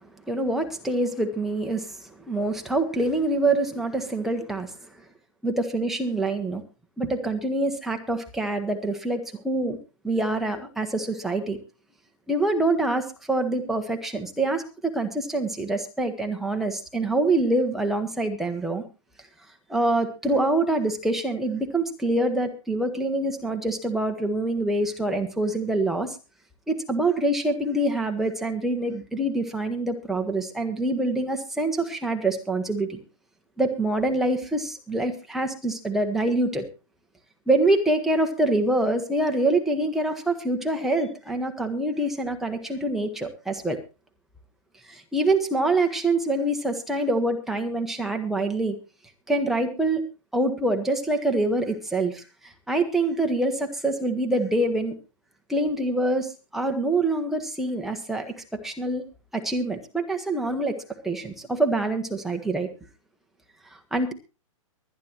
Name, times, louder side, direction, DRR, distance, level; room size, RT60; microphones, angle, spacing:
voice 1, 0.3-4.7 5.4-6.6 7.0-9.8 10.0-11.6 12.3-18.8 19.7-26.2 26.7-33.0 33.6-36.7 37.5-43.8 44.9-48.8 49.3-50.0 50.3-55.0 55.5-59.0 59.3-62.7 63.7-64.1, right 2 dB, ahead, 3 dB, 1.3 m, -25 dB
23.5 x 9.7 x 3.0 m, 0.31 s
hypercardioid pair, 145°, 17 cm